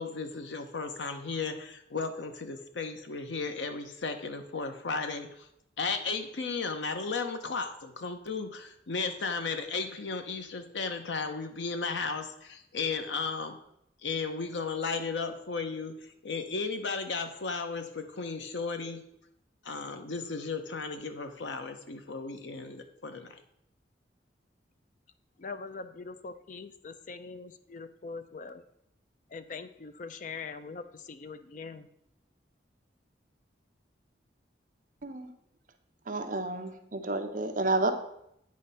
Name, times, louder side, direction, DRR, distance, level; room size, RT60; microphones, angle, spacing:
voice 1, 0.0-5.5 5.8-13.6 14.0-15.9 16.2-19.0 19.6-23.4, left 4 dB, 80° left, 7 dB, 0.7 m, -35 dB
voice 2, 25.4-28.6 29.3-31.9, left 4 dB, 45° left, 11 dB, 0.4 m, -42 dB
voice 3, 36.1-37.9, right 2 dB, 45° right, 6 dB, 0.6 m, -30 dB
8.6 x 3.2 x 5.4 m, 0.77 s
head